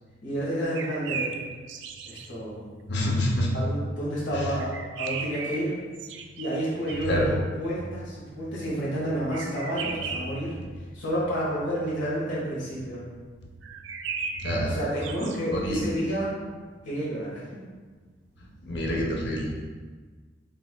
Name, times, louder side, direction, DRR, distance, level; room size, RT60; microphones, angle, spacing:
voice 1, 0.2-1.3 2.1-2.6 3.5-5.8 6.4-10.6 10.9-13.0 14.6-16.3 16.8-17.6, right 1 dB, 85° left, -8 dB, 1.5 m, -30 dB
sound 1, 0.6-2.3 4.6-7.2 9.3-10.5 13.6-15.4, right 5 dB, 75° right, 0.3 m, -36 dB
voice 2, 2.9-3.5 4.3-4.5 7.0-7.3 14.4-14.8 15.5-15.8 18.6-19.6, equal, 65° left, -2 dB, 0.8 m, -26 dB
5.5 x 3.5 x 2.2 m, 1.4 s
head